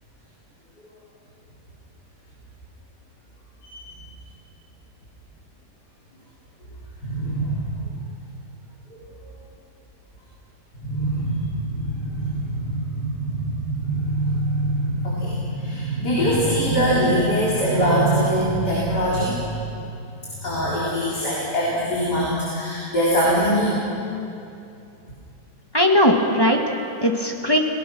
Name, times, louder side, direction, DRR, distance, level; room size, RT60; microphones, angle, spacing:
voice 1, 7.0-7.9 8.9-9.0 10.8-19.6 20.4-23.8, right 1 dB, 85° left, -7 dB, 4.6 m, -23 dB
voice 2, 25.7-27.6, equal, 15° left, 2 dB, 1.8 m, -19 dB
30.0 x 18.5 x 6.2 m, 2.6 s
omnidirectional pair, 1.7 m